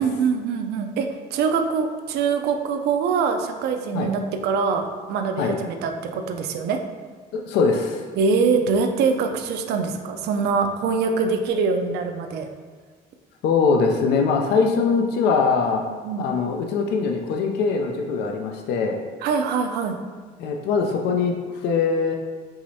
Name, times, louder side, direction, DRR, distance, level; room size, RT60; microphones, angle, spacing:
voice 1, 0.0-6.8 8.2-12.5 16.0-16.3 19.2-19.9, right 5 dB, 75° right, 6 dB, 0.4 m, -23 dB
voice 2, 7.3-8.0 13.4-15.8 16.2-19.0 20.4-22.2, left 5 dB, 85° left, 2 dB, 0.4 m, -22 dB
4.8 x 3.0 x 2.7 m, 1.5 s
cardioid pair, 110°, 17 cm